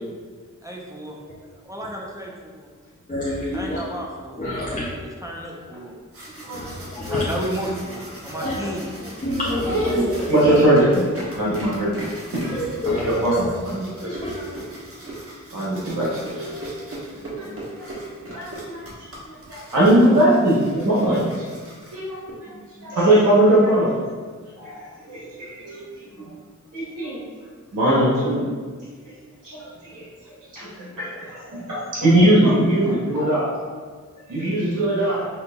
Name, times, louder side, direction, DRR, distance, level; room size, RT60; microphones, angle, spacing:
voice 1, 0.6-1.1 1.7-2.7 3.5-4.9 5.2-5.9 7.0-9.1, right 1 dB, 10° right, -2 dB, 0.6 m, -33 dB
voice 2, 3.1-3.8 4.4-4.9 6.5-7.3 8.4-8.6 9.2-10.0 10.4-10.6 11.5-11.7 12.5-13.5 14.2-14.4 15.0-15.1, left 1 dB, 25° left, -8 dB, 0.7 m, -27 dB
sound 1, 5.9-22.3, right 1 dB, 45° right, 1.1 m, -39 dB
voice 3, 9.8-11.1 11.3-12.1 12.3-12.5 12.8-14.4 15.5-16.7 17.1-17.5 17.8-17.9 18.3-18.9 19.2-21.4 21.9-22.5 22.8-24.0 24.6-26.3 26.7-27.2 27.7-28.5 29.4-30.0 30.5-33.5 34.3-35.2, right 1 dB, 80° right, -8 dB, 1.0 m, -21 dB
5.5 x 2.6 x 2.3 m, 1.6 s
cardioid pair, 55°, 31 cm